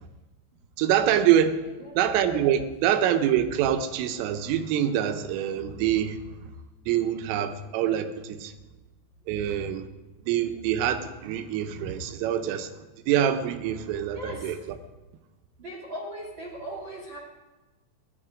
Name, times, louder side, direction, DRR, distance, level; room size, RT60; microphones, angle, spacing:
voice 1, 0.8-1.6 2.0-6.2 6.9-8.5 9.3-9.9 10.3-12.7 13.1-14.8, right 10 dB, 85° right, 9 dB, 3.6 m, -25 dB
voice 2, 1.6-2.2 14.1-14.6 15.6-17.2, equal, 35° right, -3 dB, 2.3 m, -39 dB
17.5 x 13.5 x 5.1 m, 1.2 s
omnidirectional pair, 5.7 m